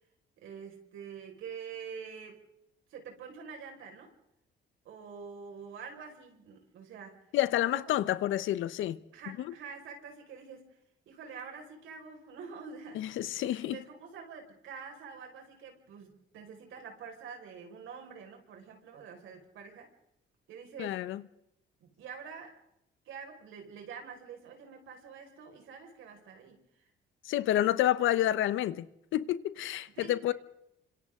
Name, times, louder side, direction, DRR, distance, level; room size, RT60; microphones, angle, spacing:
voice 1, 0.4-2.4 2.9-4.1 4.9-7.3 7.7-8.0 9.1-10.8 11.1-19.9 20.5-21.0 21.8-22.6 23.1-26.9 30.0-30.1, right 6 dB, 80° right, 5.3 m, -46 dB
voice 2, 7.3-9.0 9.4-9.5 12.9-13.8 20.8-21.2 27.2-28.9 29.1-30.3, left 13 dB, 85° left, 1.0 m, -29 dB
29.5 x 26.0 x 3.8 m
cardioid pair, 90°, 20 cm